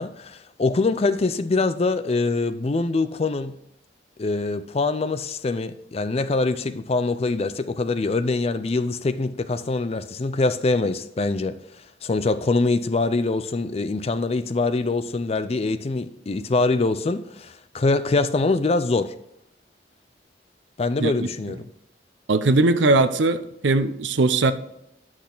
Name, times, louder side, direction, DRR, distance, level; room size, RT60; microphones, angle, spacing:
voice 1, 0.0-3.5 4.2-11.6 12.0-19.1 20.8-21.7, left 3 dB, 35° left, 0.4 m, -24 dB
voice 2, 22.3-24.5, right 2 dB, 80° right, 0.6 m, -19 dB
10.5 x 6.2 x 3.9 m
head